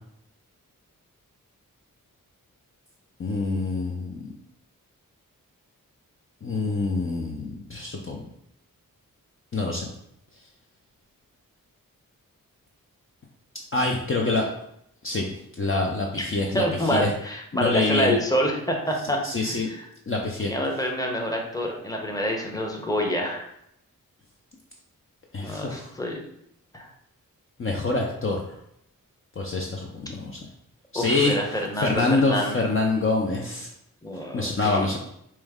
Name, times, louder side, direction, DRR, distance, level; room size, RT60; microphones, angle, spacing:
voice 1, 3.2-4.3 6.4-8.2 9.5-9.9 13.7-14.5 15.0-15.3 15.6-17.1 17.5-18.2 19.2-19.7 20.1-20.5 25.3-25.9 27.6-28.5 29.4-30.4 30.9-31.3 31.8-33.7 34.3-35.0, left 3 dB, 40° left, -1 dB, 0.6 m, -25 dB
voice 2, 16.2-19.9 20.4-23.5 25.4-26.2 26.7-26.9 30.9-32.6 34.0-34.9, equal, 10° left, 1 dB, 0.8 m, -27 dB
4.4 x 2.1 x 3.5 m, 0.74 s
cardioid pair, 50°, 34 cm